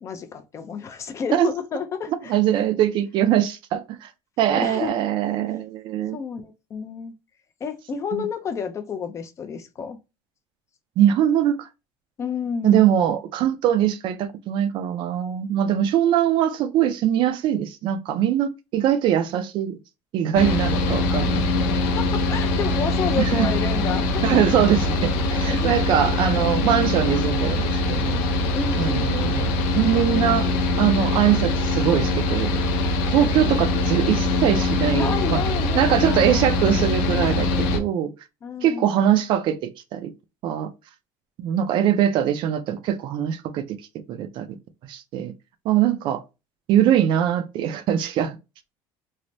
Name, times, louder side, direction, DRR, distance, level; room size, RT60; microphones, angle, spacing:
voice 1, 0.0-2.3 4.5-4.9 6.1-7.1 7.6-10.0 12.2-12.9 21.9-24.7 25.5-25.7 28.5-29.3 34.9-36.5 38.4-39.0, left 6 dB, 25° left, 0.4 m, -30 dB
voice 2, 2.3-4.1 4.4-6.2 8.1-8.2 11.0-11.7 12.6-19.8 20.1-21.7 23.2-23.5 24.2-28.2 28.8-30.5 30.8-32.7 33.1-35.4 35.8-38.1 38.6-40.1 40.4-40.7 41.4-43.8 44.1-44.6 44.8-45.3 45.6-46.2 46.7-48.4, right 10 dB, 45° right, 0.4 m, -22 dB
Mechanical fan, 20.3-37.8, left 2 dB, 85° left, 0.6 m, -23 dB
3.2 x 2.0 x 2.6 m
cardioid pair, 160°, 11 cm